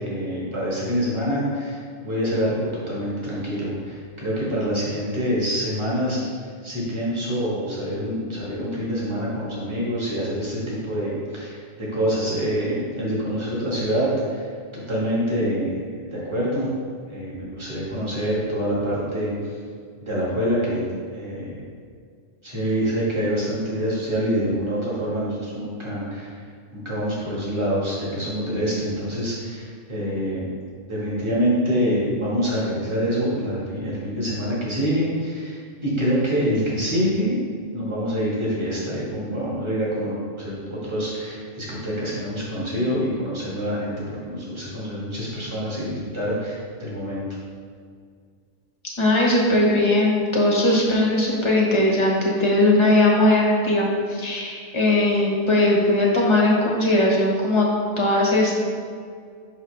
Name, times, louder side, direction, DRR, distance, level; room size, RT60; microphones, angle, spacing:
voice 1, 0.0-6.2 6.6-14.5 14.9-16.7 17.1-19.3 20.0-20.8 21.1-21.5 22.4-26.3 26.7-30.5 30.9-37.4 37.7-43.9 44.2-47.2, equal, 25° right, -7 dB, 1.8 m, -26 dB
voice 2, 49.0-57.7 58.0-58.6, left 1 dB, 25° left, -3 dB, 1.2 m, -19 dB
5.9 x 5.8 x 3.3 m, 2.1 s
omnidirectional pair, 1.2 m